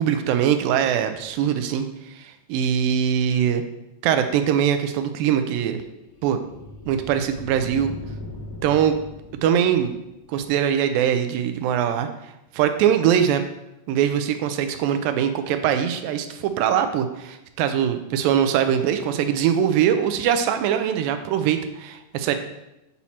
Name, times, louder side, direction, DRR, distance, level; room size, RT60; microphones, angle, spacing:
voice 1, 0.0-3.6 4.0-5.8 6.2-6.4 6.9-7.9 8.6-9.0 9.4-10.0 10.3-12.1 12.5-13.4 13.9-22.4, right 9 dB, 90° right, 8 dB, 2.3 m, -22 dB
sound 1, 5.1-10.3, left 2 dB, 65° left, 1.5 m, -40 dB
8.3 x 4.3 x 4.3 m, 0.91 s
omnidirectional pair, 4.0 m